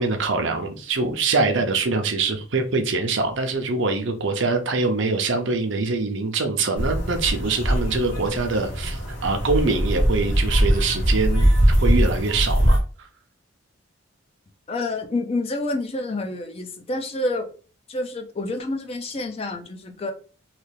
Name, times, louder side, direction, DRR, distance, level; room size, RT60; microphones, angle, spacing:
voice 1, 0.0-13.1, right 3 dB, 60° right, 0.6 m, -24 dB
sound 1, 6.7-12.8, equal, 55° left, 1.3 m, -21 dB
voice 2, 14.7-17.5 17.9-20.1, left 2 dB, 30° left, 0.4 m, -28 dB
3.2 x 2.4 x 3.2 m
head